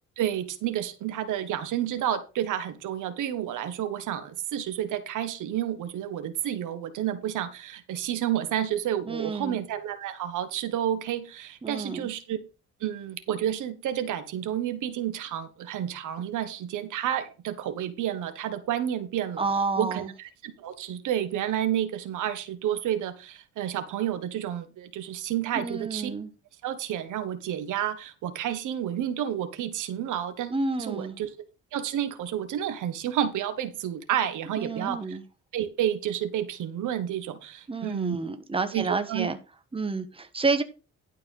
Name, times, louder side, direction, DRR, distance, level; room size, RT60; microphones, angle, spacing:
voice 1, 0.2-12.4 12.8-19.4 19.8-26.1 26.6-31.3 31.7-35.2 35.5-38.2 38.7-39.3, right 10 dB, 80° right, 10 dB, 1.5 m, -30 dB
voice 2, 9.1-9.6 11.6-12.1 19.4-20.1 25.5-26.3 30.5-31.2 34.6-35.2 37.7-39.4 39.7-40.6, right 3 dB, 20° right, 9 dB, 1.4 m, -29 dB
11.5 x 4.6 x 5.5 m, 0.31 s
cardioid pair, 90°, 30 cm